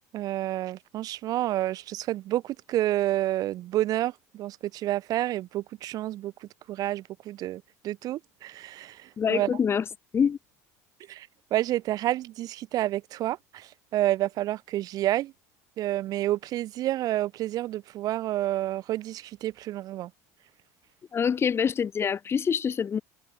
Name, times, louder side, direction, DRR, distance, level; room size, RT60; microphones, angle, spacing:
voice 1, 0.1-9.5 11.1-15.3 15.8-20.1, right 14 dB, 45° right, 0.5 m, -29 dB
voice 2, 9.2-9.8 10.1-10.4 21.1-23.0, left 7 dB, 30° left, 1.3 m, -25 dB
hypercardioid pair, 85°, 8 cm